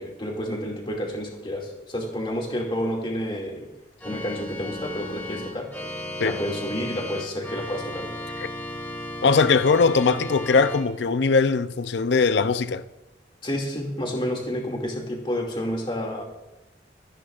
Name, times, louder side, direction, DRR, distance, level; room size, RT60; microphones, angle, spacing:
voice 1, 0.0-3.7 4.0-5.7 6.2-8.1 13.4-16.2, equal, 30° left, 2.4 m, -30 dB
Organ, 4.0-10.8, left 1 dB, 10° left, 1.8 m, -35 dB
voice 2, 9.2-12.8, left 4 dB, 70° left, 0.6 m, -20 dB
26.0 x 10.5 x 2.5 m
head